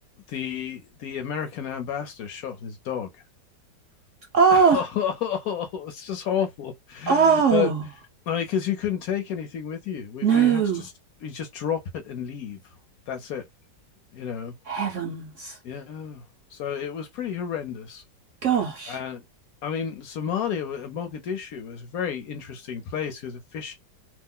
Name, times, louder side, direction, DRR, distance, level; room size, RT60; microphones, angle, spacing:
voice 1, 0.3-3.1 4.5-7.7 8.3-10.9 11.2-12.6 13.1-13.4 14.1-14.5 15.6-16.2 16.5-18.0 18.9-19.2 19.6-23.7, left 8 dB, 65° left, 1.0 m, -31 dB
voice 2, 4.3-4.8 7.1-7.8 10.2-10.8 14.7-15.6 18.4-19.0, right 6 dB, 65° right, 0.8 m, -20 dB
2.8 x 2.1 x 3.6 m
omnidirectional pair, 1.9 m